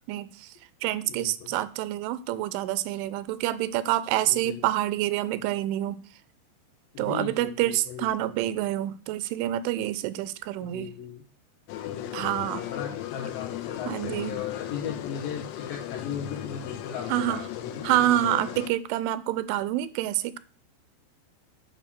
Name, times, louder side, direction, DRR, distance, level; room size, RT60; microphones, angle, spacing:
voice 1, 0.1-0.5 0.8-6.0 7.0-10.9 12.1-12.6 13.9-14.3 17.1-17.4 17.8-20.4, right 14 dB, 85° right, 3.0 m, -27 dB
voice 2, 1.0-1.6 4.3-4.6 6.9-8.5 10.6-11.2 11.9-18.4, left 7 dB, 70° left, 2.3 m, -37 dB
sound 1, 11.7-18.7, left 13 dB, 90° left, 3.3 m, -36 dB
9.0 x 5.4 x 7.3 m
omnidirectional pair, 5.5 m